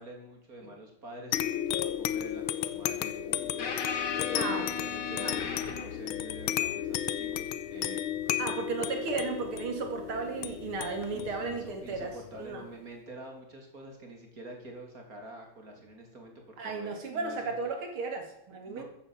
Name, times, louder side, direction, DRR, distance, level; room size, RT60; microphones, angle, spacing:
voice 1, 0.0-4.0 4.3-8.6 11.1-17.5 18.6-18.8, right 1 dB, 40° right, 2 dB, 3.4 m, -47 dB
sound 1, 1.3-12.4, left 11 dB, 75° left, 1.6 m, -34 dB
sound 2, 3.6-6.1 9.1-9.2 11.0-11.2, left 6 dB, 55° left, 2.3 m, -36 dB
voice 2, 4.3-4.7 5.1-5.4 8.4-12.1 12.4-12.6 16.6-18.8, right 4 dB, 70° right, 4 dB, 3.3 m, -34 dB
14.5 x 10.0 x 7.3 m, 0.80 s
omnidirectional pair, 2.4 m